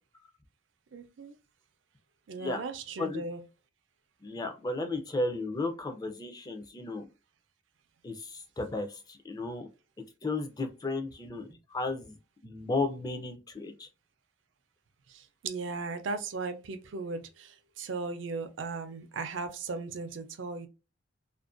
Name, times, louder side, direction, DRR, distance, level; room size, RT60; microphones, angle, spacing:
voice 1, 0.9-1.3 2.3-3.4 15.1-20.7, right 4 dB, 75° right, 0.4 m, -37 dB
voice 2, 4.2-7.1 8.0-9.7 10.2-12.2 12.4-13.9, left 2 dB, 20° left, 0.4 m, -34 dB
2.5 x 2.1 x 2.4 m
head